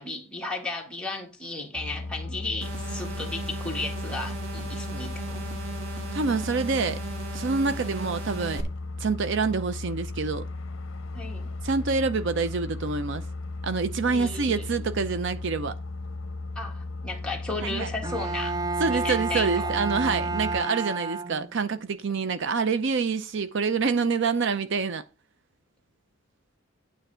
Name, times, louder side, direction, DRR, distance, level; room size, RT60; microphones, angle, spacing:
voice 1, 0.0-5.5 11.1-11.5 14.1-14.7 16.6-18.5 18.9-19.7, left 2 dB, 5° left, 1.7 m, -34 dB
sound 1, 1.7-20.6, left 2 dB, 70° left, 0.6 m, -36 dB
sound 2, 2.6-8.6, right 4 dB, 85° right, 1.7 m, -38 dB
voice 2, 6.1-7.0 7.3-8.6 9.0-10.5 11.6-13.2 13.6-15.8 17.6-17.9 18.8-25.0, right 4 dB, 65° right, 0.6 m, -26 dB
Bowed string instrument, 18.0-21.8, right 4 dB, 20° right, 0.3 m, -31 dB
9.2 x 3.4 x 6.7 m
head